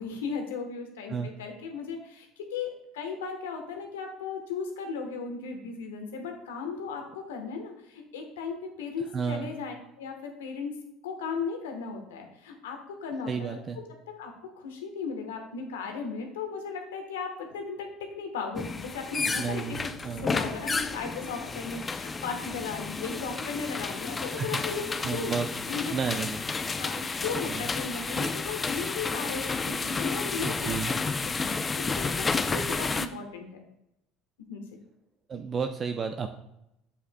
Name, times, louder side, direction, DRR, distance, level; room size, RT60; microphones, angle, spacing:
voice 1, 0.0-10.7 11.0-13.6 14.2-19.8 20.2-25.3 25.7-26.2 26.6-33.5 34.5-34.8, left 5 dB, 90° left, 4 dB, 1.1 m, -36 dB
voice 2, 9.1-9.5 13.3-13.8 19.4-19.8 20.0-20.3 24.4-24.5 25.0-25.5 25.7-26.4 27.4-27.7 30.4-30.9 35.3-36.3, right 6 dB, 40° right, 6 dB, 0.5 m, -31 dB
sound 1, 18.5-33.1, left 4 dB, 25° left, 0.5 m, -31 dB
8.6 x 7.1 x 2.2 m, 0.83 s
hypercardioid pair, 75°, 0 cm